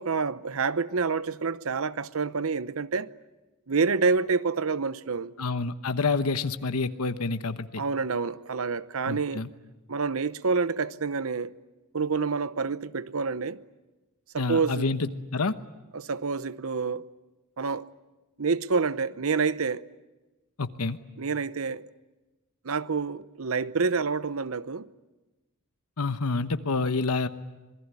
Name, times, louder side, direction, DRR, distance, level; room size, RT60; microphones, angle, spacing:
voice 1, 0.0-3.1 3.7-5.3 7.8-9.4 9.9-11.5 11.9-13.6 14.3-14.9 15.9-17.0 17.6-17.9 18.4-19.8 21.2-21.9 22.6-24.9, right 4 dB, 65° right, 0.8 m, -28 dB
voice 2, 5.4-7.8 9.1-9.5 14.4-15.5 20.6-21.0 26.0-27.3, left 3 dB, 85° left, 1.1 m, -28 dB
26.5 x 21.0 x 9.7 m
head